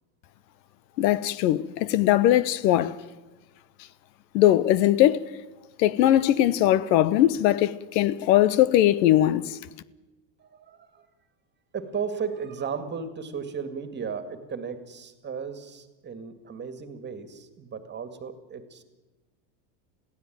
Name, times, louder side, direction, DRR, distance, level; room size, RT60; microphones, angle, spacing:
voice 1, 1.0-2.9 4.3-5.3 5.8-9.6, left 13 dB, 85° left, 1.1 m, -20 dB
voice 2, 10.4-11.1 11.7-18.8, right 6 dB, 20° right, 2.0 m, -35 dB
22.0 x 15.5 x 9.2 m
supercardioid pair, 145°, 50 cm